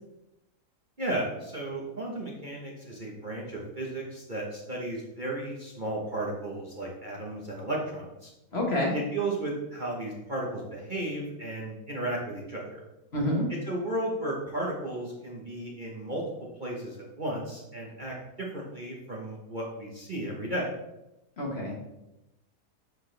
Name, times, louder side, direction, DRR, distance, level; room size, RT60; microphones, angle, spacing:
voice 1, 1.0-8.3 8.9-12.8 13.6-16.2 16.6-20.7, right 1 dB, 35° right, -3 dB, 1.1 m, -34 dB
voice 2, 8.5-8.9 13.1-13.5 21.4-21.7, left 1 dB, 40° left, -1 dB, 1.6 m, -27 dB
10.0 x 4.8 x 3.3 m, 0.94 s
omnidirectional pair, 1.8 m